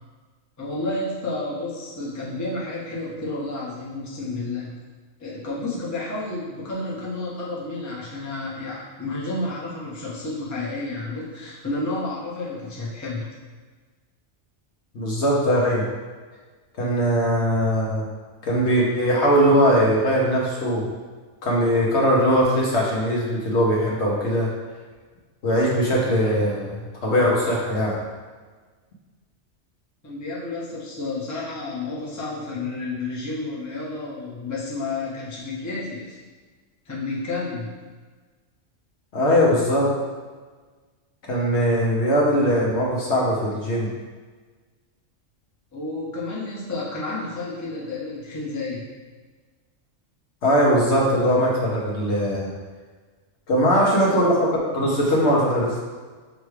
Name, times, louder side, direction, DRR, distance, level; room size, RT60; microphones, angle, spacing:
voice 1, 0.6-4.7 5.2-13.3 30.0-36.2 36.8-37.8 45.7-48.8 53.7-54.2, left 2 dB, 15° left, -6 dB, 0.7 m, -31 dB
voice 2, 14.9-15.9 16.8-18.1 18.4-20.9 21.4-24.5 25.4-28.0 39.1-39.9 41.3-43.9 50.4-52.5 53.5-55.8, equal, 65° left, -4 dB, 1.1 m, -20 dB
6.4 x 2.3 x 3.2 m, 1.4 s
omnidirectional pair, 1.3 m